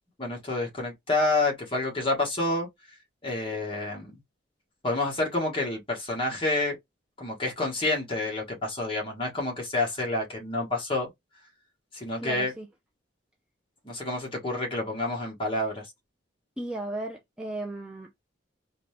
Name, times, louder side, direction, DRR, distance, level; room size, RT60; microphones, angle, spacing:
voice 1, 0.2-2.7 3.2-4.1 4.8-6.8 7.2-11.1 11.9-12.5 13.8-15.9, left 2 dB, 25° left, 1.5 m, -28 dB
voice 2, 12.2-12.7 16.6-18.1, right 1 dB, 5° right, 0.4 m, -35 dB
3.8 x 2.6 x 3.2 m
head